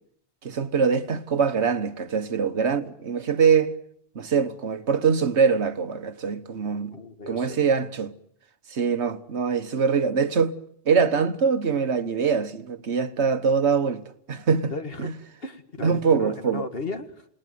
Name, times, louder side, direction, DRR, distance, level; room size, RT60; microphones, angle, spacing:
voice 1, 0.4-3.7 4.1-6.9 7.3-8.1 8.7-10.6 10.8-14.0 14.3-14.7 15.0-15.1 15.8-16.6, right 6 dB, 75° right, 1.6 m, -23 dB
voice 2, 6.9-7.6 14.7-15.1 15.4-17.3, left 3 dB, 60° left, 2.1 m, -35 dB
28.5 x 19.0 x 9.3 m
omnidirectional pair, 1.1 m